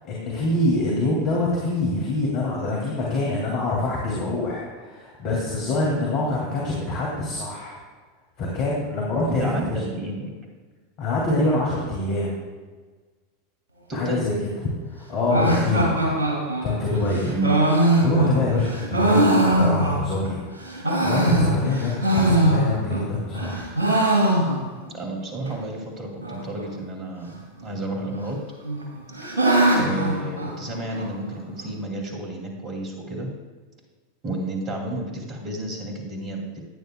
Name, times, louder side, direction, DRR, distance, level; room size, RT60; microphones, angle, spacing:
voice 1, 0.1-7.8 8.4-9.4 9.7-9.8 11.0-12.3 13.9-16.1 16.6-17.3 18.0-20.4 21.0-23.7, left 2 dB, 45° left, -3 dB, 2.4 m, -25 dB
voice 2, 9.4-10.3 13.9-14.3 17.2-17.5 24.9-27.4 27.6-28.4 29.8-33.3 34.2-36.4, right 1 dB, 30° right, 1 dB, 2.5 m, -31 dB
sound 1, 15.3-20.3 20.7-23.0 23.3-24.9 25.1-25.2 25.5-25.6 26.2-26.6 27.7-28.3 28.6-31.1, right 1 dB, 80° right, 2.3 m, -21 dB
15.5 x 9.3 x 2.3 m, 1.4 s
figure-of-eight pair, 85°, 0 cm